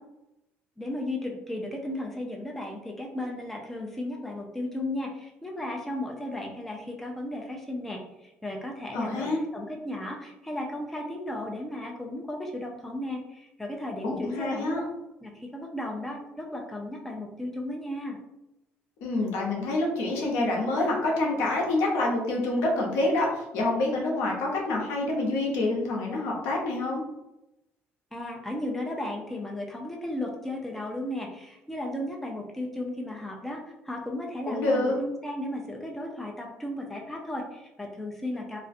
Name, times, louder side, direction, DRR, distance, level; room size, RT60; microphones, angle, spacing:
voice 1, 0.8-14.8 15.2-18.2 28.1-38.6, left 1 dB, 5° left, 0 dB, 0.4 m, -35 dB
voice 2, 8.9-9.4 14.0-14.8 19.0-27.0 34.5-35.0, left 2 dB, 85° left, -1 dB, 0.7 m, -27 dB
2.4 x 2.1 x 2.5 m, 0.92 s
cardioid pair, 130°, 5 cm